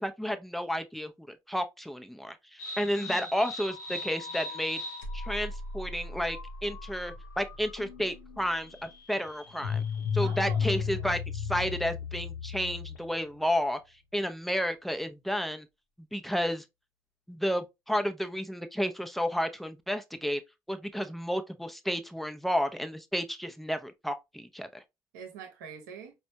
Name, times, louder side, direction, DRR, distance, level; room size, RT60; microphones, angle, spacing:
voice 1, 0.0-4.8 5.1-9.8 10.1-13.8 14.1-15.7 16.1-16.6 17.3-20.4 20.7-24.8, equal, ahead, 0.6 m, -32 dB
sound 1, 2.6-13.2, left 5 dB, 75° left, 0.8 m, -36 dB
Gasp, 2.8-3.3, left 5 dB, 35° left, 0.7 m, -48 dB
voice 2, 10.2-11.1 25.1-26.1, right 7 dB, 70° right, 0.9 m, -45 dB
5.1 x 2.3 x 2.8 m
figure-of-eight pair, 45°, 10 cm